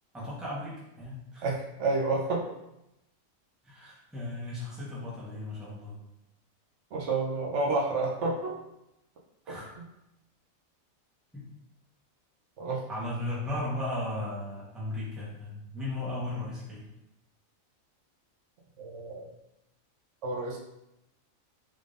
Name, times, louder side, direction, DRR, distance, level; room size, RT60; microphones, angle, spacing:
voice 1, 0.1-1.5 3.6-6.0 9.4-9.7 11.3-11.4 12.9-16.8, left 1 dB, ahead, -8 dB, 0.9 m, -36 dB
voice 2, 1.4-2.5 6.9-8.6 12.6-12.8 18.8-19.3 20.2-20.6, right 3 dB, 65° right, -2 dB, 0.9 m, -29 dB
3.6 x 3.5 x 2.5 m, 0.88 s
omnidirectional pair, 1.4 m